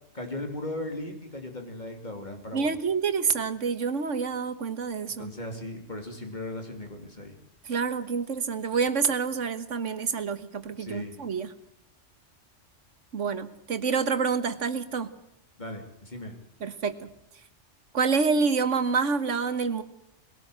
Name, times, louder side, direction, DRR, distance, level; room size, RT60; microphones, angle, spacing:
voice 1, 0.1-2.7 5.2-7.3 10.8-11.2 15.6-16.3, left 1 dB, 35° left, 3 dB, 3.1 m, -37 dB
voice 2, 2.5-5.3 7.7-11.5 13.1-15.1 16.6-17.1 17.9-19.8, right 5 dB, 75° right, 11 dB, 1.6 m, -27 dB
21.5 x 18.0 x 8.0 m, 0.75 s
omnidirectional pair, 1.3 m